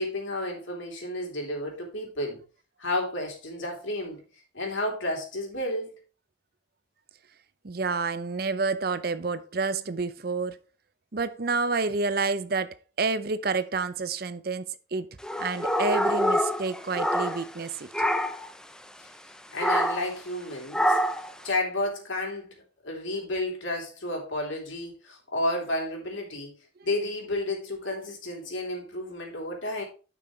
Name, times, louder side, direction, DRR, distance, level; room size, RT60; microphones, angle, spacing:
voice 1, 0.0-2.4 2.8-4.2 4.5-5.9 19.0-19.1 19.5-20.9 21.4-26.5 26.8-29.8, left 1 dB, 85° left, 3.2 m, -31 dB
voice 2, 7.6-10.6 11.1-15.1 15.4-17.9, right 4 dB, 50° right, 0.6 m, -29 dB
sound 1, 15.2-17.6 17.9-18.5 19.6-20.1 20.7-21.3, equal, 5° left, 0.4 m, -26 dB
10.5 x 6.1 x 3.2 m
head